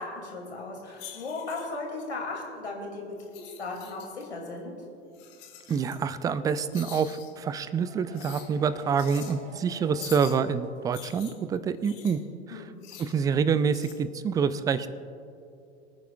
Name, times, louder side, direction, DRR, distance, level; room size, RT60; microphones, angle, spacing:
voice 1, 0.0-3.2 3.6-4.7 12.5-12.8, left 3 dB, 75° left, 0 dB, 2.5 m, -36 dB
sound 1, 1.0-1.8 3.2-4.2 5.1-6.0 6.7-7.3 8.1-8.5 8.9-9.3 10.0-10.4 10.9-12.2 12.8-13.2 13.7-13.9, left 10 dB, 50° left, 1.8 m, -45 dB
voice 2, 5.7-12.2 12.5-12.6 13.0-14.9, right 6 dB, 10° right, 15 dB, 0.3 m, -27 dB
sound 2, 7.6-11.1 11.4-11.5 11.8-11.9, right 1 dB, 55° right, 2.5 m, -49 dB
24.5 x 9.2 x 2.3 m, 2.5 s
figure-of-eight pair, 80°, 33 cm